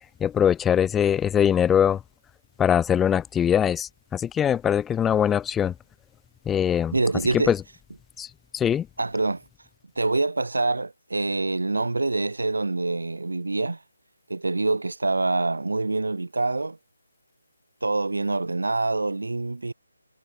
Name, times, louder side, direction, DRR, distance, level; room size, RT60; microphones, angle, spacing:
voice 1, 0.2-2.0 2.6-5.7 6.5-6.9 7.3-7.6 8.2-8.3 8.5-8.9, left 9 dB, 10° left, 0.3 m, -22 dB
voice 2, 6.9-7.5 9.0-9.4 10.0-13.8 14.3-16.8 17.8-19.7, right 3 dB, 80° right, 4.3 m, -25 dB
figure-of-eight pair, 155°, 0 cm